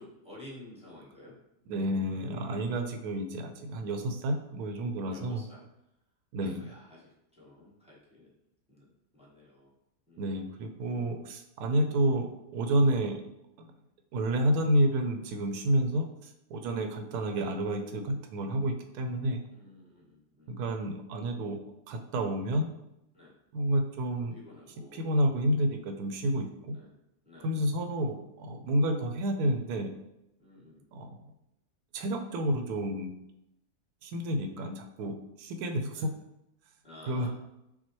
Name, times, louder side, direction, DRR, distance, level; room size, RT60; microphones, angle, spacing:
voice 1, 0.0-1.4 5.1-5.6 6.4-8.3 8.7-8.9 9.1-9.7 10.1-10.4 11.6-11.9 16.7-16.9 19.5-20.6 23.1-23.3 24.3-25.0 25.3-25.4 26.7-27.0 27.2-27.6 30.4-30.8 34.2-34.4 35.9-36.1 36.8-37.3, left 1 dB, 5° right, -6 dB, 0.8 m, -52 dB
voice 2, 1.7-5.4 6.3-6.6 10.2-13.2 14.1-16.1 16.5-19.4 20.5-21.6 21.9-22.7 23.5-24.4 24.9-26.7 27.4-29.9 30.9-31.2 31.9-33.2 34.0-36.1 37.1-37.3, right 1 dB, 80° right, 5 dB, 1.1 m, -29 dB
5.8 x 2.2 x 3.0 m, 0.86 s
omnidirectional pair, 1.7 m